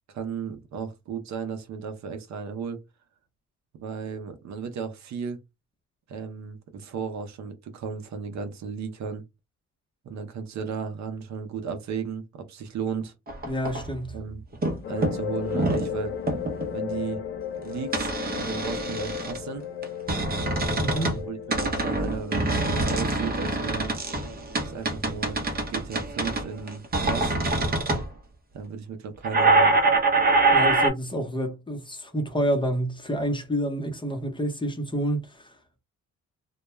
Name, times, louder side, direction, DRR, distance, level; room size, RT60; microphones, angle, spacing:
voice 1, 0.1-2.8 3.8-5.4 6.1-9.2 10.0-13.1 14.1-14.4 14.9-16.1 16.7-17.2 17.6-19.6 20.9-23.9 24.6-25.4 25.7-27.4 28.5-29.8, right 6 dB, 65° right, 0.7 m, -34 dB
sound 1, 13.3-14.2 14.5-14.8 15.0-15.9 16.3-16.7 17.9-19.4 19.8-21.2 21.5-28.1 29.2-30.9, right 2 dB, 30° right, 0.8 m, -24 dB
voice 2, 13.5-14.2 20.8-21.1 30.5-35.5, equal, 15° left, 0.8 m, -28 dB
sound 2, 14.8-23.4, left 9 dB, 45° left, 0.5 m, -35 dB
2.2 x 2.2 x 3.0 m
cardioid pair, 90°, 30 cm